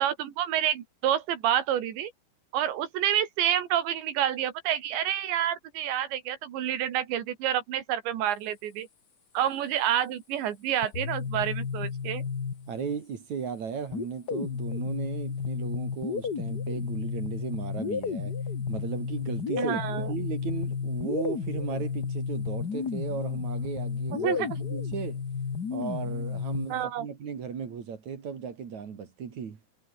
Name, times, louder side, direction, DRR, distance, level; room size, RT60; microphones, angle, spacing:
voice 1, 0.0-2.1 2.5-8.9 9.3-12.2 19.6-20.1 24.2-24.5 26.7-27.1, right 11 dB, 85° right, 4.6 m, -28 dB
sound 1, 10.8-13.0 13.9-26.8, left 6 dB, 65° left, 1.0 m, -32 dB
voice 2, 12.7-18.3 18.7-25.2 25.7-29.6, right 6 dB, 45° right, 3.5 m, -36 dB
omnidirectional pair, 5.0 m